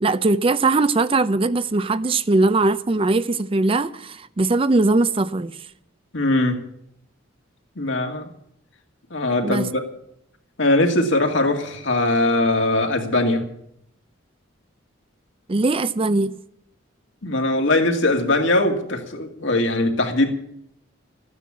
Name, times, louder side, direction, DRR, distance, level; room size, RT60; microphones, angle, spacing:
voice 1, 0.0-5.6 9.4-9.7 15.5-16.4, right 3 dB, 30° right, 0.5 m, -20 dB
voice 2, 6.1-6.6 7.8-8.3 9.1-9.8 10.6-13.5 17.2-20.3, left 2 dB, 70° left, 2.3 m, -21 dB
14.0 x 9.7 x 8.5 m
head